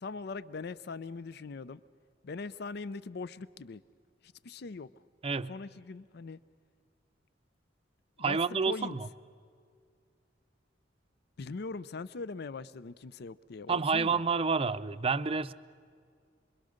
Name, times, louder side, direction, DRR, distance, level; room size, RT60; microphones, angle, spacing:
voice 1, 0.0-1.8 2.2-3.8 4.2-4.9 5.5-6.4 8.2-8.4 8.7-9.0 11.4-14.2, left 4 dB, 65° left, 18 dB, 0.5 m, -41 dB
voice 2, 8.2-9.1 13.7-15.5, right 5 dB, 30° right, 13 dB, 0.5 m, -29 dB
27.0 x 22.0 x 6.5 m, 2.1 s
head